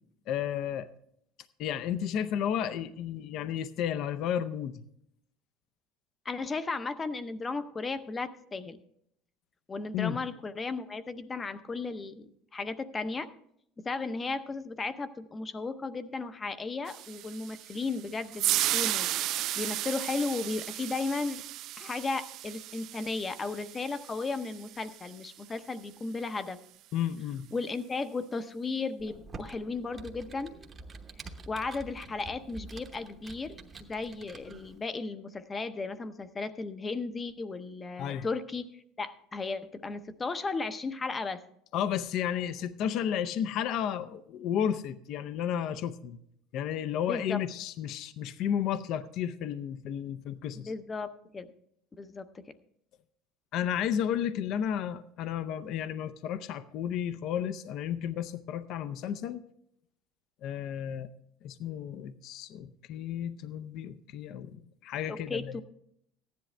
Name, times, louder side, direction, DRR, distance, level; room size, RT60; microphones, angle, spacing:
voice 1, 0.3-0.9 1.6-4.8 9.9-10.2 26.9-27.5 38.0-38.3 41.7-46.2 46.5-50.7 53.5-59.4 60.4-61.1 61.4-65.6, left 9 dB, 55° left, 12 dB, 0.6 m, -32 dB
voice 2, 6.2-8.8 9.7-13.3 13.8-19.1 19.6-21.4 21.8-26.6 27.5-30.5 31.5-41.4 47.0-47.4 50.5-51.5 52.0-52.4 65.1-65.6, left 3 dB, 20° left, 11 dB, 0.7 m, -35 dB
sound 1, 16.9-25.2, right 14 dB, 55° right, 0.3 m, -34 dB
Computer keyboard, 29.0-34.8, right 3 dB, 25° right, 1.0 m, -47 dB
14.5 x 10.5 x 3.3 m, 0.71 s
cardioid pair, 135°, 0 cm